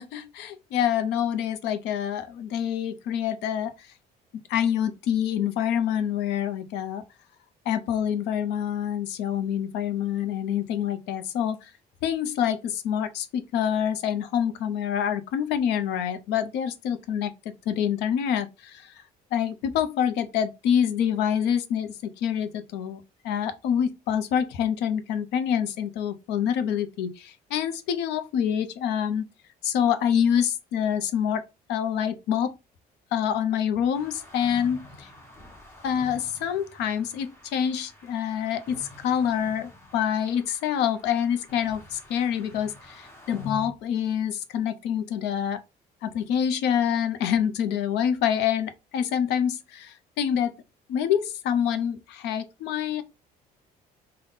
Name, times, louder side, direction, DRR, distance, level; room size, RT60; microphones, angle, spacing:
voice 1, 0.0-3.9 4.5-7.0 7.7-11.7 12.0-17.3 17.7-18.9 19.3-29.3 29.6-31.4 31.7-32.6 33.1-35.1 35.8-45.6 46.0-50.5 50.9-53.0, left 9 dB, 85° left, 0.6 m, -26 dB
sound 1, 33.9-43.7, left 3 dB, 15° left, 1.0 m, -46 dB
3.6 x 2.2 x 3.8 m
cardioid pair, 110°, 17 cm